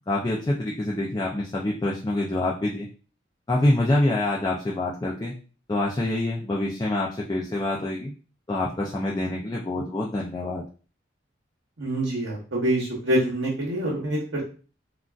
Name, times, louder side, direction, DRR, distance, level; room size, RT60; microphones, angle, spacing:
voice 1, 0.1-2.9 3.5-5.4 5.7-8.1 8.5-10.6, left 1 dB, 20° left, -3 dB, 0.3 m, -26 dB
voice 2, 11.8-14.4, right 1 dB, 70° right, -5 dB, 0.9 m, -26 dB
3.7 x 2.2 x 2.3 m, 0.37 s
head